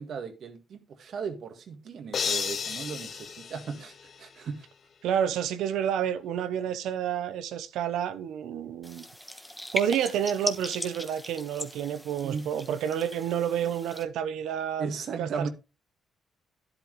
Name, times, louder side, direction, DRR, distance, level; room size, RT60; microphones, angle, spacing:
voice 1, 0.0-4.6 12.2-12.4 14.8-15.5, right 5 dB, 60° right, 1.9 m, -36 dB
sound 1, 2.1-4.5, left 6 dB, 55° left, 1.2 m, -33 dB
voice 2, 5.0-9.1 9.7-14.9 15.2-15.5, right 9 dB, 85° right, 0.9 m, -29 dB
sound 2, 8.8-14.0, left 1 dB, 5° left, 1.4 m, -38 dB
10.5 x 8.3 x 3.2 m
cardioid pair, 90°, 0 cm